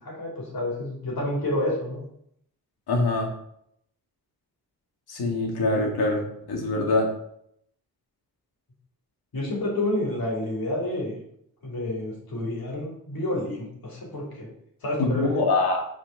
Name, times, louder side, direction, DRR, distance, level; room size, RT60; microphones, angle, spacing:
voice 1, 0.0-2.0 5.6-5.9 9.3-11.2 11.6-14.5 14.8-15.4, left 1 dB, 70° left, -3 dB, 3.4 m, -29 dB
voice 2, 2.9-3.3 5.1-7.1 15.0-15.8, left 2 dB, 90° left, 1 dB, 2.1 m, -24 dB
6.2 x 4.9 x 5.9 m, 0.73 s
cardioid pair, 95°, 37 cm